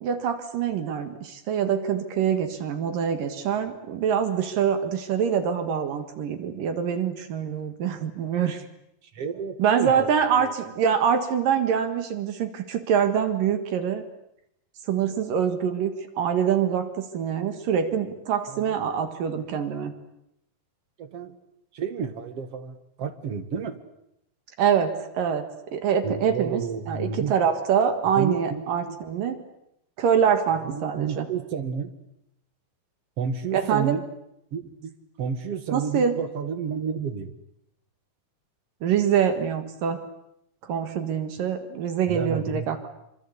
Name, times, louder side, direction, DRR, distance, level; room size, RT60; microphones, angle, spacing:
voice 1, 0.0-8.6 9.6-14.0 14.9-19.9 24.6-29.4 30.0-31.3 33.5-34.0 35.7-36.2 38.8-40.0 40.6-42.9, right 7 dB, 70° right, 9 dB, 3.3 m, -25 dB
voice 2, 9.1-10.1 18.5-18.8 21.0-21.4 21.7-23.8 26.0-27.3 28.2-29.0 30.6-31.9 33.2-34.0 34.5-34.9 35.2-37.3 42.1-42.7, right 6 dB, 50° right, 9 dB, 2.6 m, -31 dB
26.0 x 25.5 x 8.3 m, 0.79 s
omnidirectional pair, 4.1 m